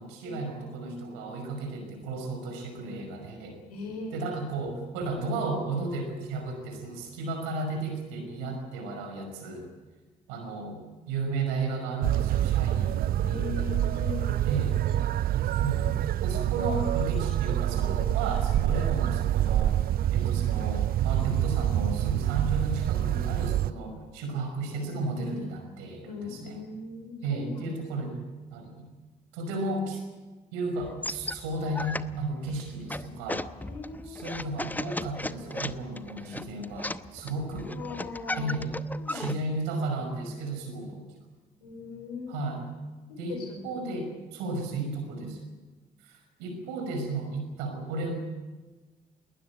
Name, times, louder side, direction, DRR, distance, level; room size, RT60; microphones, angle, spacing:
voice 1, 0.0-3.6 4.1-9.7 10.3-10.8 11.1-13.6 14.5-14.8 15.6-19.8 20.1-26.6 27.2-28.2 28.5-28.9 29.3-30.0 30.5-33.4 34.0-37.7 38.4-38.7 39.1-41.0 42.3-42.7 43.2-45.4 46.0-48.2, right 2 dB, 70° right, 4 dB, 5.6 m, -34 dB
voice 2, 3.7-4.3 13.2-14.4 26.1-27.8 33.6-34.3 37.6-38.6 39.0-39.3 41.6-42.3 43.1-43.6, left 4 dB, 80° left, 4 dB, 4.2 m, -39 dB
sound 1, 12.0-23.7, right 12 dB, 50° right, 0.6 m, -26 dB
sound 2, 30.8-39.4, left 2 dB, 10° left, 0.8 m, -36 dB
21.0 x 19.5 x 8.8 m, 1.2 s
figure-of-eight pair, 45°, 20 cm